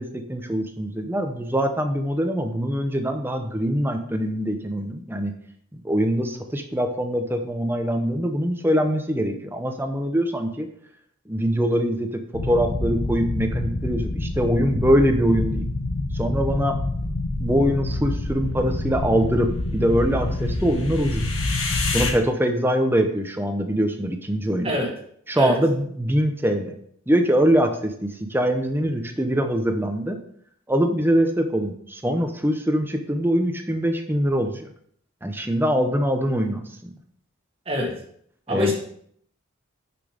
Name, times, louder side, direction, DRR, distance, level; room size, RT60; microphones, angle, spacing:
voice 1, 0.0-5.3 5.7-10.7 11.3-15.7 16.1-16.8 17.4-21.3 21.9-24.7 25.3-26.7 27.1-30.2 30.7-34.7 35.2-36.9 38.5-38.7, equal, 10° right, 5 dB, 0.8 m, -23 dB
sound 1, 12.3-22.1, left 2 dB, 75° left, 1.4 m, -27 dB
voice 2, 24.6-24.9 25.4-25.5 37.7-37.9 38.5-38.7, left 1 dB, 30° right, 0 dB, 1.8 m, -24 dB
6.5 x 6.1 x 5.1 m, 0.65 s
head